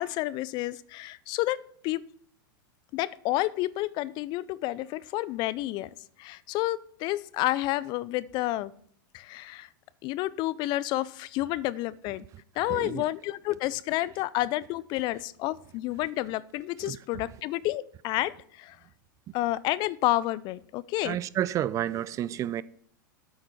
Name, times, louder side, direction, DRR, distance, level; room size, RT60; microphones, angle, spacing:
voice 1, 0.0-2.0 2.9-5.9 6.2-8.7 9.1-9.7 10.0-12.3 12.6-18.8 19.3-21.2, left 16 dB, 45° left, 0.4 m, -30 dB
voice 2, 12.7-13.0 16.8-17.0 21.0-22.6, right 11 dB, 30° right, 0.3 m, -30 dB
8.2 x 6.5 x 4.6 m
hypercardioid pair, 110°, 11 cm